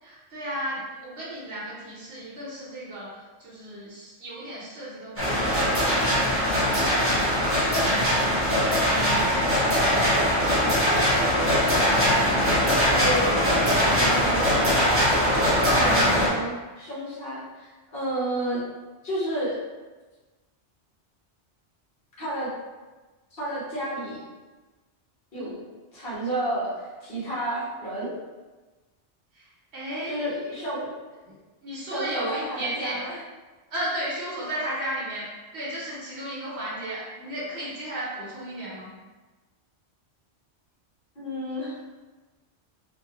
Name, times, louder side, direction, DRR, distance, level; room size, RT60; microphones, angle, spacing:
voice 1, 0.0-8.9 15.6-15.9 25.3-25.6 29.3-30.6 31.2-33.1 33.7-35.3 35.5-38.9, right 1 dB, 70° right, -7 dB, 1.1 m, -35 dB
sound 1, 5.2-16.3, equal, 15° right, 0.8 m, -21 dB
voice 2, 12.1-14.9 15.7-18.6 19.0-19.6 22.2-22.5 23.3-24.2 25.3-25.6 25.9-28.1 30.1-30.9 31.8-33.2 41.1-41.8, right 1 dB, 55° left, -8 dB, 1.3 m, -31 dB
3.4 x 2.1 x 2.9 m, 1.3 s
omnidirectional pair, 1.2 m